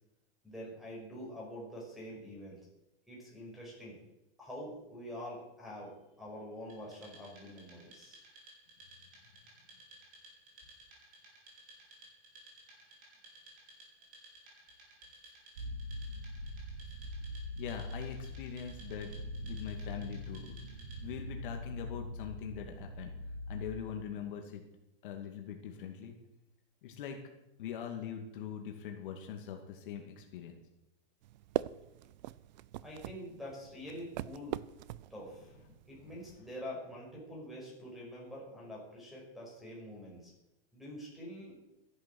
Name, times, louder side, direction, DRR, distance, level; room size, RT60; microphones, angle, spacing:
voice 1, 0.4-2.6 3.1-4.0 4.4-8.2 32.8-34.5 35.1-35.5 35.9-40.3 40.7-41.6, equal, ahead, -3 dB, 5.6 m, -46 dB
Wood, 6.7-21.2, right 2 dB, 25° right, 5.4 m, -57 dB
sound 1, 15.6-23.7, left 1 dB, 80° right, 2.5 m, -42 dB
voice 2, 17.6-19.1 19.4-20.6 21.0-23.1 23.5-24.6 25.0-26.1 26.8-27.2 27.6-30.5 36.0-36.1, left 8 dB, 55° left, 3 dB, 2.3 m, -42 dB
sound 2, 31.2-36.4, right 14 dB, 45° right, 0.5 m, -42 dB
14.0 x 11.0 x 7.8 m, 0.91 s
supercardioid pair, 165°, 30 cm